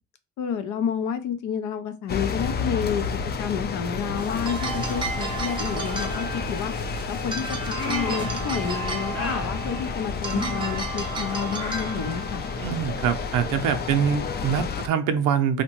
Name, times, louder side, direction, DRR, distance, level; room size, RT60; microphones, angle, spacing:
voice 1, 0.4-6.7 7.1-12.4, left 7 dB, 80° left, 10 dB, 0.6 m, -30 dB
sound 1, 2.1-14.9, left 5 dB, 35° left, 0.4 m, -31 dB
sound 2, 4.2-14.6, right 3 dB, 15° right, 0.5 m, -34 dB
sound 3, 7.7-8.4 9.1-9.5 10.3-10.7 11.6-11.9, left 2 dB, 50° left, 0.9 m, -32 dB
voice 2, 12.6-15.6, right 8 dB, 90° right, 7 dB, 0.5 m, -24 dB
2.8 x 2.1 x 2.9 m, 0.31 s
cardioid pair, 90°, 30 cm